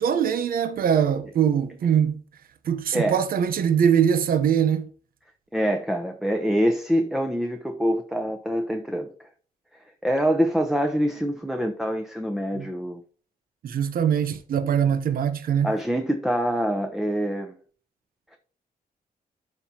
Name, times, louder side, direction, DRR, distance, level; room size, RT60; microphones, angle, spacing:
voice 1, 0.0-2.2 2.6-4.9 12.5-12.7 13.6-15.7, right 8 dB, 70° right, 0.8 m, -22 dB
voice 2, 5.5-9.1 10.0-13.0 15.6-17.5, equal, ahead, 0.8 m, -25 dB
12.0 x 5.4 x 2.8 m
cardioid pair, 115°, 16 cm